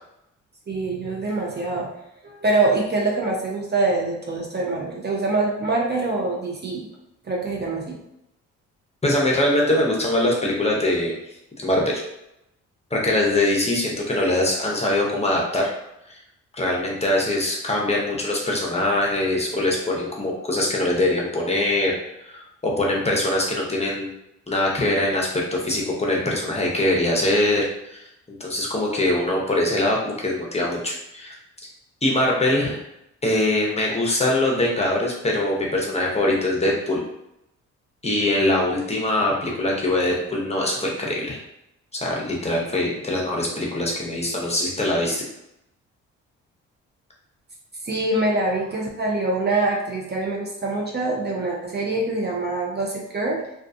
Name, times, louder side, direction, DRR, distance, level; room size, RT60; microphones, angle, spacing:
voice 1, 0.7-1.9 2.2-6.8 7.2-8.0 47.8-53.4, right 2 dB, 35° right, -2 dB, 0.6 m, -24 dB
voice 2, 9.0-11.2 11.6-12.0 12.9-15.7 16.1-16.2 16.5-21.9 22.2-24.1 24.5-27.7 27.9-28.1 28.4-31.3 32.0-32.8 33.2-37.0 38.0-41.4 41.9-45.2, left 1 dB, 20° left, -2 dB, 0.8 m, -22 dB
2.4 x 2.3 x 2.6 m, 0.83 s
supercardioid pair, 55°, 31 cm